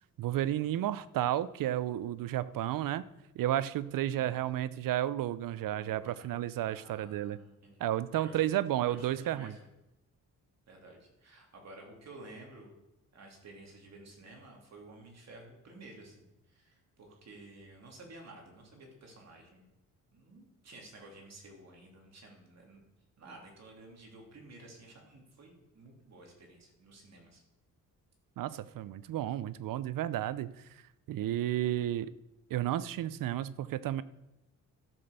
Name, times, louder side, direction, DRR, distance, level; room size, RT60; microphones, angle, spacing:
voice 1, 0.2-3.0 3.4-7.4 7.8-9.5 28.4-30.5 31.1-32.1 32.5-34.0, right 12 dB, 75° right, 17 dB, 0.6 m, -32 dB
voice 2, 5.7-6.3 6.6-7.9 8.2-8.4 8.8-9.7 10.7-12.8 13.1-19.7 20.1-22.8 23.2-27.4, right 2 dB, 50° right, 0 dB, 3.0 m, -53 dB
13.0 x 6.0 x 6.6 m, 0.93 s
cardioid pair, 115°, 34 cm